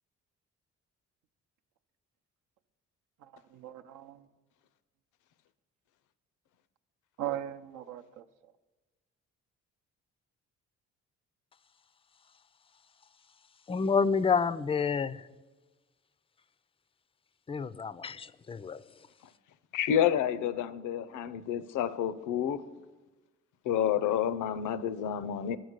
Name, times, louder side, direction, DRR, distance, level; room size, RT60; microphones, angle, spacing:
voice 1, 3.2-4.3 7.2-8.5, right 12 dB, 85° right, 7 dB, 0.7 m, -39 dB
voice 2, 13.7-15.3 17.5-18.8, left 5 dB, 20° left, 17 dB, 0.3 m, -29 dB
voice 3, 19.7-22.7 23.6-25.6, left 9 dB, 80° left, 15 dB, 0.6 m, -29 dB
8.9 x 6.3 x 8.0 m, 1.2 s
cardioid pair, 90°, 30 cm